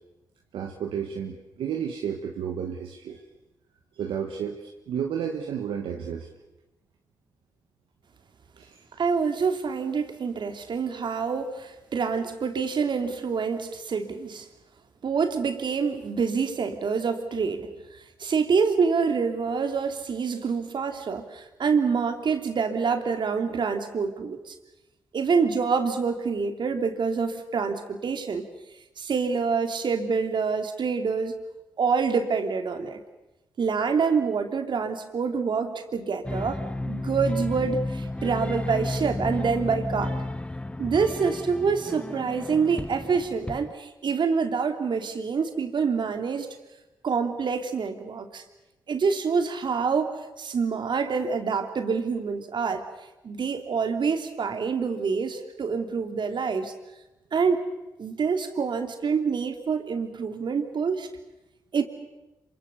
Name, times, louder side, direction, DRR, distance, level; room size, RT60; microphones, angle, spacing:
voice 1, 0.5-3.2 3.9-6.3 8.6-8.8, right 8 dB, 80° right, 2 dB, 1.6 m, -32 dB
voice 2, 9.0-14.5 15.0-17.7 18.2-24.5 25.1-28.5 29.0-31.4 31.8-33.0 33.6-40.1 40.8-46.6 47.0-48.4 48.9-52.8 53.2-56.7 57.3-57.6 58.0-61.1 61.7-61.8, right 5 dB, 60° right, 6 dB, 2.9 m, -26 dB
sound 1, 36.2-43.7, left 2 dB, 10° left, 1.2 m, -32 dB
26.5 x 25.0 x 7.0 m, 1.0 s
supercardioid pair, 40°, 9 cm